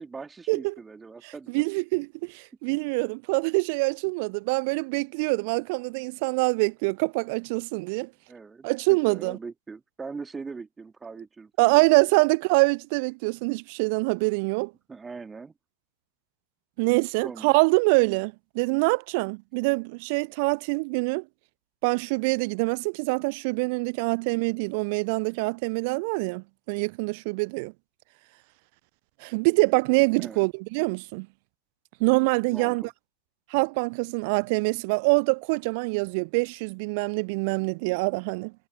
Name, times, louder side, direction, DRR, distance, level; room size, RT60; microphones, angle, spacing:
voice 1, 0.0-1.5 8.3-12.1 14.9-15.5 17.2-17.5 30.2-30.5 32.4-32.9, right 4 dB, 15° right, 2.3 m, -41 dB
voice 2, 1.2-8.1 8.6-9.4 11.6-14.7 16.8-21.3 21.8-27.7 29.2-31.3 32.0-32.8 33.5-38.5, right 30 dB, 45° right, 0.4 m, -25 dB
figure-of-eight pair, 90°, 0 cm